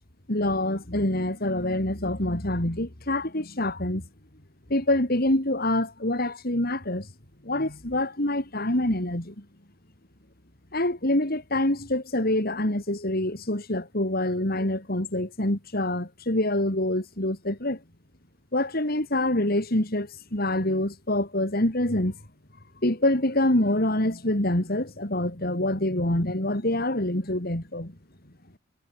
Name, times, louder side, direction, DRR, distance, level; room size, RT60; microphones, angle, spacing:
voice 1, 0.3-4.0 4.7-7.1 7.5-9.3 10.7-17.8 18.5-22.1 22.8-27.9, left 1 dB, 50° left, 3.8 m, -26 dB
head